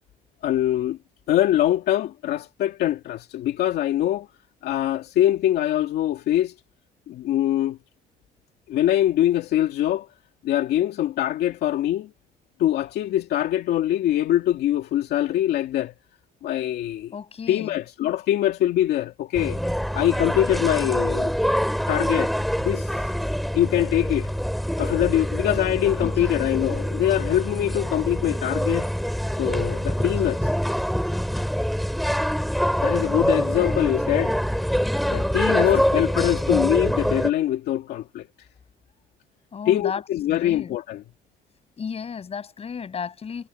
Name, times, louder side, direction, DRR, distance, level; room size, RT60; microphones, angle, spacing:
voice 1, 0.4-1.0 1.3-4.3 4.6-6.5 7.1-7.8 8.7-10.1 10.4-12.1 12.6-15.9 16.4-17.1 17.5-19.6 19.9-21.3 21.9-22.9 23.5-24.3 24.8-28.9 29.4-30.5 32.8-34.4 35.1-38.3 39.7-41.0, left 12 dB, 75° left, 2.4 m, -23 dB
voice 2, 17.1-17.7 26.0-26.4 30.0-30.6 35.5-36.5 39.5-40.7 41.8-43.5, left 6 dB, 35° left, 7.3 m, -35 dB
sound 1, 19.3-37.3, equal, ahead, 6.4 m, -25 dB
cardioid pair, 110°, 17 cm